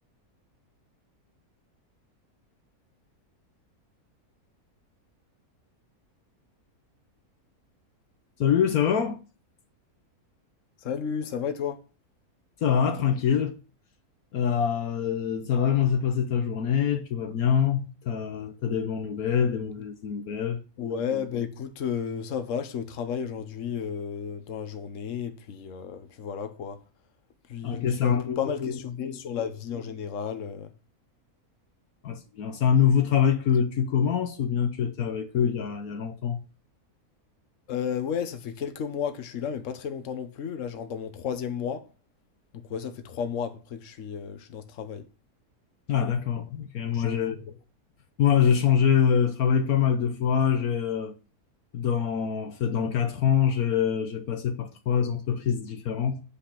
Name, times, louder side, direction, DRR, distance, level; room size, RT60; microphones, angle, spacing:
voice 1, 8.4-9.2 12.6-13.6 14.3-20.6 27.6-28.7 32.0-36.4 45.9-47.3 48.2-51.2 51.7-56.2, left 8 dB, 75° left, 1.4 m, -25 dB
voice 2, 10.8-11.8 20.8-26.8 27.5-30.7 37.7-41.9 42.5-45.1 46.8-47.4, left 7 dB, 55° left, 1.3 m, -33 dB
8.5 x 5.1 x 5.8 m
omnidirectional pair, 1.6 m